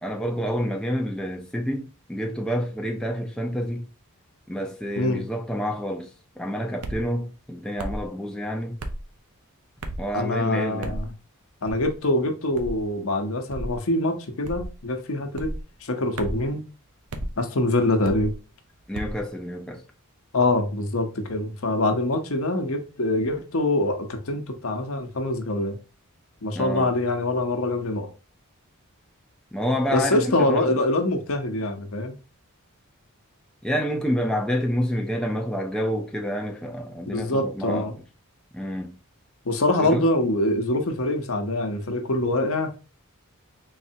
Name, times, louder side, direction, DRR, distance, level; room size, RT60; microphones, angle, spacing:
voice 1, 0.0-3.9 4.5-8.8 10.0-11.0 18.9-19.8 26.5-26.9 29.5-30.8 33.6-37.9 38.5-39.0 39.8-40.1, equal, 5° left, 0.5 m, -28 dB
voice 2, 5.0-5.3 10.1-11.1 11.6-15.5 15.8-16.6 17.4-18.3 20.3-25.8 26.4-28.1 29.9-32.2 37.1-37.9 39.4-42.8, left 2 dB, 65° left, 0.8 m, -24 dB
sound 1, 6.8-7.0 7.8-8.1 8.8-9.0 9.8-10.1 10.8-11.1 11.6-11.9 12.5-12.8 13.5-13.8 14.4-14.8 15.3-15.6 16.2-16.5 17.1-17.3 18.0-18.3 18.9-19.2, right 1 dB, 80° right, 0.7 m, -33 dB
4.0 x 3.2 x 2.7 m
head